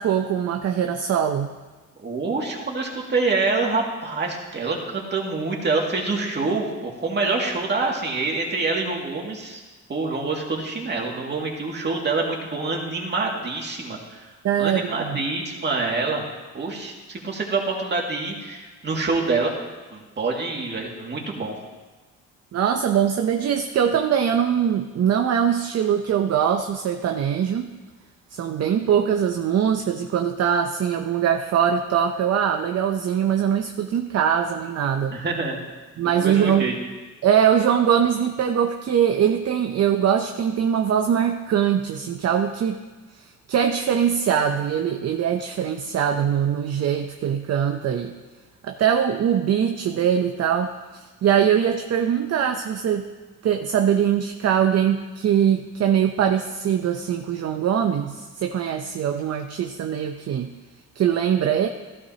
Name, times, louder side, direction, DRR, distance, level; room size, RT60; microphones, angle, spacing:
voice 1, 0.0-1.5 14.4-15.2 22.5-27.7 28.3-35.2 36.0-36.7 37.2-42.8 43.2-48.1 48.6-53.1 53.4-60.5 61.0-61.7, right 8 dB, 55° right, 5 dB, 0.7 m, -22 dB
voice 2, 2.0-9.6 9.9-14.3 14.6-16.2 16.5-19.5 19.9-21.5 35.1-35.6 36.2-36.8, right 3 dB, 35° right, -1 dB, 2.3 m, -26 dB
14.5 x 12.0 x 2.9 m, 1.3 s
cardioid pair, 90°, 30 cm